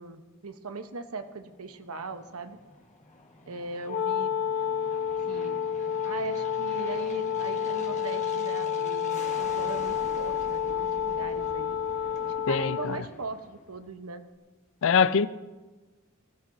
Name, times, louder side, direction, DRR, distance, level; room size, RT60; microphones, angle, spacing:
voice 1, 0.0-2.6 3.5-4.4 5.3-5.6 6.0-11.8 12.5-14.3, right 4 dB, 90° right, 1.0 m, -39 dB
Aircraft, 1.3-14.1, left 2 dB, 35° left, 1.4 m, -47 dB
Wind instrument woodwind instrument, 3.8-13.1, left 8 dB, 80° left, 0.9 m, -30 dB
voice 2, 12.5-13.0 14.8-15.3, left 6 dB, 65° left, 0.4 m, -23 dB
23.0 x 15.5 x 2.7 m
head